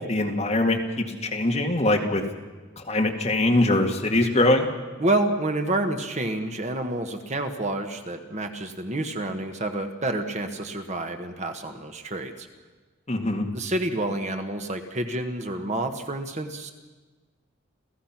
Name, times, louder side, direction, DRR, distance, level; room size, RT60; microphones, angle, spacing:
voice 1, 0.1-2.2 2.9-4.7 13.1-13.4, left 1 dB, 35° left, 2 dB, 2.1 m, -22 dB
voice 2, 5.0-12.5 13.5-16.7, right 2 dB, 35° right, 6 dB, 1.3 m, -28 dB
29.0 x 15.5 x 6.0 m, 1.3 s
head